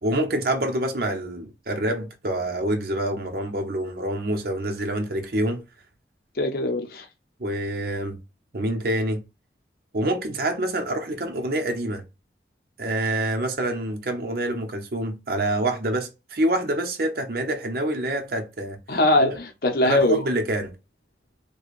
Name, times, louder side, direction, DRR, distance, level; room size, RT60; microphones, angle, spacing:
voice 1, 0.0-5.6 7.4-8.2 8.5-9.2 9.9-12.0 12.8-18.8 19.2-19.4 19.8-20.7, right 1 dB, 55° right, 0.8 m, -26 dB
voice 2, 6.4-7.1 18.9-20.2, left 1 dB, 55° left, 0.7 m, -21 dB
4.8 x 2.2 x 2.4 m
head